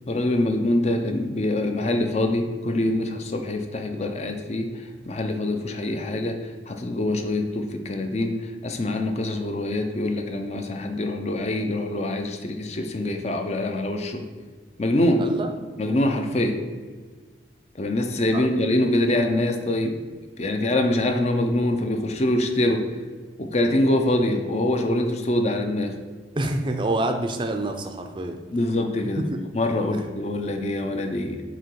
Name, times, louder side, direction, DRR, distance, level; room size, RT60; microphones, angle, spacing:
voice 1, 0.1-4.7 5.1-6.4 6.7-14.2 14.8-15.3 15.8-16.7 17.8-20.0 20.4-22.9 23.4-26.0 28.5-29.2 29.5-31.4, left 1 dB, 35° left, 5 dB, 0.5 m, -24 dB
voice 2, 15.2-15.6 18.3-18.4 26.3-28.4 29.2-29.4 29.9-30.0, right 1 dB, 25° right, 5 dB, 0.5 m, -27 dB
7.6 x 3.0 x 4.6 m, 1.5 s
head